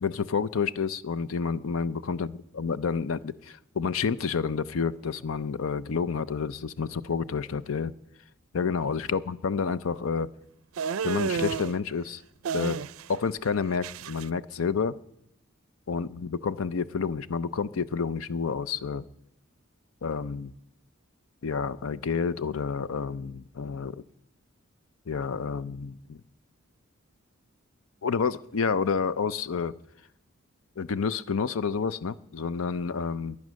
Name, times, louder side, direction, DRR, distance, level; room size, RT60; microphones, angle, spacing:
voice 1, 0.0-2.3 2.6-7.9 8.5-10.3 11.0-12.2 12.5-12.8 13.1-14.9 15.9-19.0 20.0-20.5 21.4-24.0 25.1-26.2 28.0-29.7 30.8-33.4, left 5 dB, 80° left, 17 dB, 0.6 m, -29 dB
sound 1, 10.8-11.7 12.4-13.2 13.4-14.3, right 6 dB, 85° right, 0.4 m, -31 dB
22.0 x 8.6 x 6.3 m, 0.82 s
head